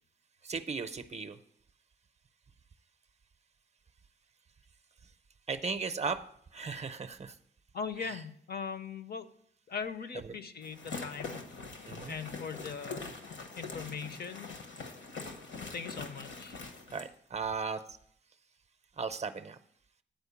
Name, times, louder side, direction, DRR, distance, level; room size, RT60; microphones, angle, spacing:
voice 1, 0.4-1.4 5.5-6.2 6.5-7.3 8.0-8.2 10.2-10.4 11.9-12.1 16.9-17.8 19.0-19.6, right 5 dB, 35° right, 10 dB, 0.5 m, -36 dB
voice 2, 7.7-9.3 9.7-11.4 12.1-13.1 13.6-14.5 15.7-16.6, left 6 dB, 55° left, 11 dB, 0.6 m, -40 dB
sound 1, 10.6-17.1, left 4 dB, 75° left, 1.2 m, -43 dB
9.1 x 4.5 x 6.9 m, 0.64 s
wide cardioid pair, 145°, 19 cm